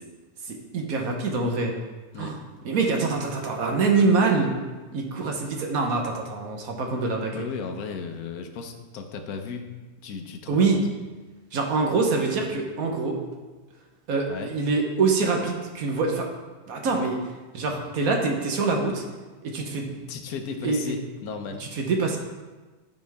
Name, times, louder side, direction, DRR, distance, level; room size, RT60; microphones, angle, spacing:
voice 1, 0.5-1.7 2.2-2.4 2.6-4.5 4.9-7.4 10.5-10.8 11.5-13.2 14.1-16.3 16.7-17.2 17.5-19.0 19.4-19.9 20.6-20.9 21.6-22.2, right 4 dB, 70° right, 2 dB, 1.3 m, -25 dB
voice 2, 7.3-9.6 10.0-10.9 14.3-14.5 16.9-17.1 19.8-21.6, left 5 dB, 75° left, 5 dB, 1.2 m, -35 dB
9.1 x 5.3 x 3.4 m, 1.3 s
omnidirectional pair, 1.6 m